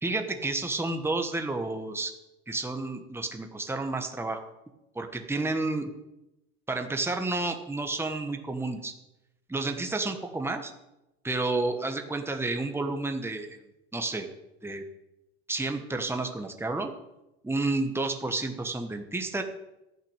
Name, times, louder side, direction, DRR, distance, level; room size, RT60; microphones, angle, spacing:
voice 1, 0.0-2.1 2.5-4.4 4.9-5.9 6.7-8.9 9.5-10.7 11.2-13.6 13.9-14.3 14.6-14.8 15.5-16.9 17.4-19.4, right 2 dB, 5° right, 5 dB, 1.3 m, -30 dB
12.0 x 5.7 x 9.0 m, 0.93 s
hypercardioid pair, 90°, 33 cm